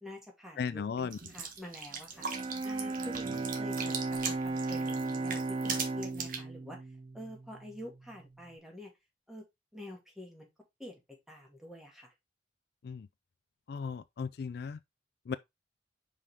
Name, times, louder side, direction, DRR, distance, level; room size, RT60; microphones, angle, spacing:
voice 1, 0.0-6.8 7.1-8.9 9.3-9.4 9.7-10.5 10.8-11.0 11.3-12.1, left 1 dB, ahead, 2.1 m, -47 dB
voice 2, 0.6-1.2 12.8-13.1 13.7-14.8 15.3-15.4, left 6 dB, 60° left, 0.3 m, -36 dB
sound 1, 1.1-6.4, right 6 dB, 50° right, 1.4 m, -39 dB
Bowed string instrument, 2.2-8.2, right 3 dB, 30° right, 0.4 m, -36 dB
5.5 x 5.2 x 3.5 m
head